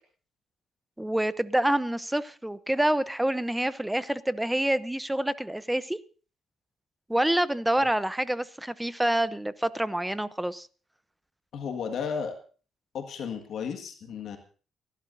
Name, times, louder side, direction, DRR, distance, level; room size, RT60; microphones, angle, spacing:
voice 1, 1.0-6.0 7.1-10.7, right 1 dB, 5° right, 16 dB, 0.7 m, -27 dB
voice 2, 11.5-12.4 12.9-14.4, left 6 dB, 70° left, 5 dB, 1.8 m, -33 dB
29.0 x 11.5 x 2.7 m, 0.38 s
cardioid pair, 90°, 0 cm